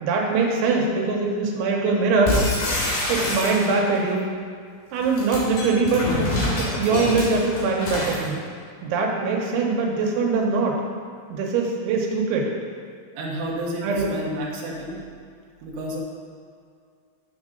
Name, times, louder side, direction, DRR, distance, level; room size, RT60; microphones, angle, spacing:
voice 1, 0.0-2.4 3.1-4.2 4.9-8.4 8.8-10.8 11.3-12.5 13.8-14.1, right 4 dB, 90° right, 0 dB, 3.3 m, -22 dB
sound 1, 2.3-4.0 5.0-8.3, left 2 dB, 55° left, 3.0 m, -26 dB
voice 2, 13.1-15.0 15.6-16.0, right 1 dB, 65° right, -4 dB, 2.4 m, -30 dB
7.5 x 6.7 x 3.8 m, 2.2 s
omnidirectional pair, 5.2 m